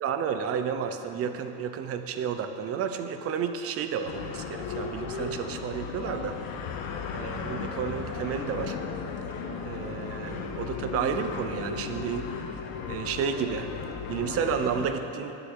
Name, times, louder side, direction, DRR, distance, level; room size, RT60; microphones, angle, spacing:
voice 1, 0.0-6.4 7.1-8.8 9.6-12.3 12.9-13.7 14.1-15.4, right 7 dB, 35° right, 8 dB, 0.6 m, -31 dB
sound 1, 4.0-14.9, left 5 dB, 70° left, 1.0 m, -35 dB
18.5 x 6.9 x 3.8 m, 2.9 s
cardioid pair, 160°, 41 cm